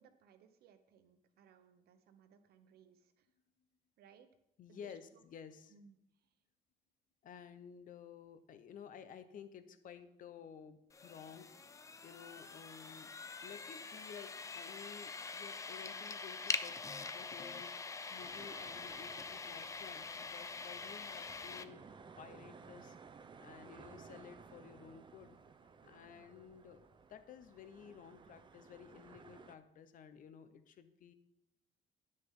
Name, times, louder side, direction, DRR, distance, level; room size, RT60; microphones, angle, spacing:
voice 1, 0.0-3.3 4.0-4.3 4.7-5.2 5.7-6.0 6.2-6.3 25.9-26.2, right 7 dB, 70° right, 9 dB, 0.9 m, -64 dB
voice 2, 4.6-5.7 7.2-11.5 12.0-13.1 13.4-16.8 17.1-21.8 22.2-25.4 25.6-31.1, left 8 dB, 55° left, 11 dB, 0.8 m, -54 dB
sound 1, 10.9-21.6, left 4 dB, 20° left, 0.4 m, -44 dB
sound 2, 18.2-29.6, right 5 dB, 30° right, 0.6 m, -58 dB
9.9 x 6.5 x 3.7 m, 0.80 s
cardioid pair, 110°, 17 cm